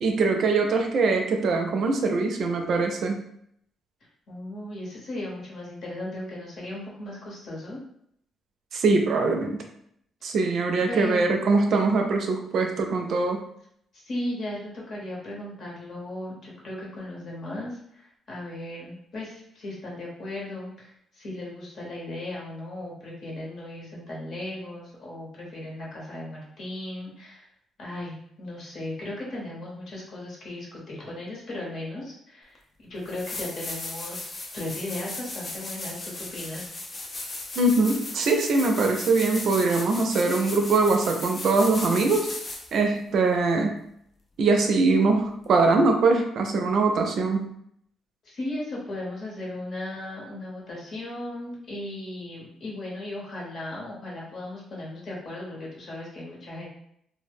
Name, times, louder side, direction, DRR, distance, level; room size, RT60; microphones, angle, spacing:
voice 1, 0.0-3.2 8.7-9.6 10.2-13.4 37.6-42.3 42.7-43.8 44.4-47.5, right 3 dB, 65° right, 3 dB, 0.4 m, -22 dB
voice 2, 4.3-7.8 10.9-11.4 14.0-27.5 27.8-36.7 48.2-56.7, left 1 dB, 55° left, -4 dB, 1.0 m, -36 dB
sound 1, 32.5-32.6 33.0-42.8 45.6-45.7, left 2 dB, 35° left, 0.5 m, -36 dB
2.1 x 2.0 x 3.4 m, 0.71 s
cardioid pair, 90°, 0 cm